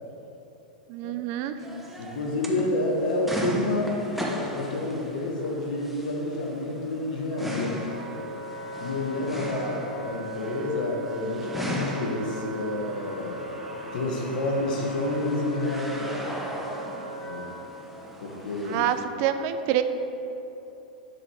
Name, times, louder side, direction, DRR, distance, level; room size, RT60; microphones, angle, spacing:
voice 1, 0.9-1.6 18.7-19.8, right 11 dB, 50° right, 10 dB, 0.5 m, -27 dB
sound 1, 1.6-19.0, equal, ahead, 0.9 m, -38 dB
voice 2, 2.0-7.8 8.8-13.4 13.9-16.3 17.2-17.5 18.2-18.8, left 2 dB, 65° left, 0 dB, 1.4 m, -29 dB
Wind instrument woodwind instrument, 7.3-17.6, right 2 dB, 80° right, 1.3 m, -39 dB
7.4 x 4.7 x 4.7 m, 2.9 s
hypercardioid pair, 105°, 5 cm